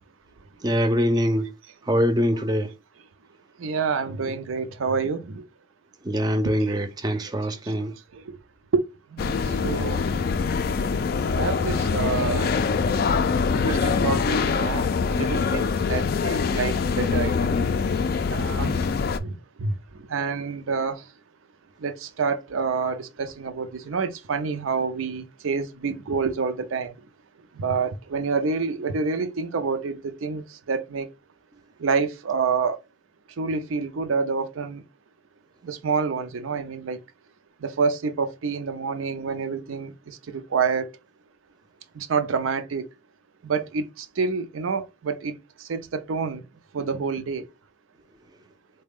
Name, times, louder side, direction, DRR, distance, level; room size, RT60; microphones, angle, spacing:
voice 1, 0.6-1.5 1.9-2.7 6.1-7.9, equal, 20° right, 0.4 m, -23 dB
voice 2, 3.6-5.4 6.4-6.7 8.3-8.4 8.7-8.8 9.1-9.4 9.6-10.0 11.3-12.5 13.5-14.8 15.2-17.5 17.8-17.9 18.3-18.7 19.2-19.3 19.6-19.7 20.1-21.0 21.8-26.9 27.6-31.1 31.8-32.8 33.4-34.8 35.6-37.0 37.6-39.9 40.5-40.9 42.0-42.9 43.4-45.3 45.7-46.4 46.7-47.4, right 5 dB, 90° right, 0.5 m, -27 dB
sound 1, 9.2-19.2, left 5 dB, 50° left, 0.3 m, -24 dB
3.9 x 2.2 x 3.4 m
head